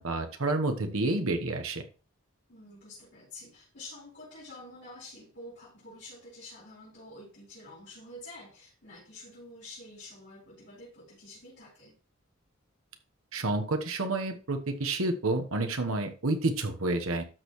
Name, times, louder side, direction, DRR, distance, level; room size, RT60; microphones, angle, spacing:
voice 1, 0.0-1.8 13.3-17.2, right 2 dB, 90° right, 6 dB, 1.2 m, -29 dB
voice 2, 2.5-11.9, left 2 dB, 55° left, -10 dB, 4.8 m, -48 dB
12.5 x 6.5 x 3.2 m, 0.35 s
head